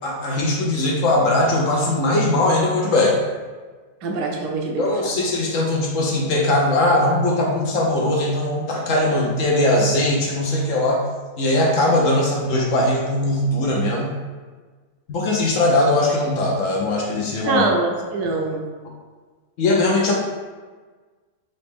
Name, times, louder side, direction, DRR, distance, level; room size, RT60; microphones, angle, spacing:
voice 1, 0.0-3.2 4.8-11.0 11.4-14.1 15.1-17.6 19.6-20.1, left 1 dB, 60° left, -1 dB, 1.0 m, -20 dB
voice 2, 4.0-4.8 17.5-18.7, right 3 dB, 80° right, 1 dB, 1.2 m, -23 dB
4.0 x 3.2 x 3.5 m, 1.4 s
omnidirectional pair, 1.7 m